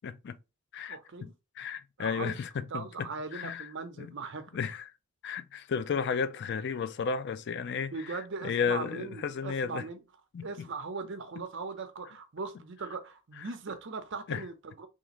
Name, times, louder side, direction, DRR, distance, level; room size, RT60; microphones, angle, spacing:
voice 1, 0.0-0.4 0.7-1.3 1.6-2.8 3.3-3.7 4.0-4.1 4.5-4.8 5.2-7.9 8.4-9.8 10.3-10.5 14.3-14.4, left 6 dB, 55° left, 0.4 m, -33 dB
voice 2, 0.9-1.3 2.0-4.5 7.9-10.0 10.4-14.9, right 4 dB, 60° right, 0.7 m, -39 dB
3.6 x 2.4 x 2.9 m
head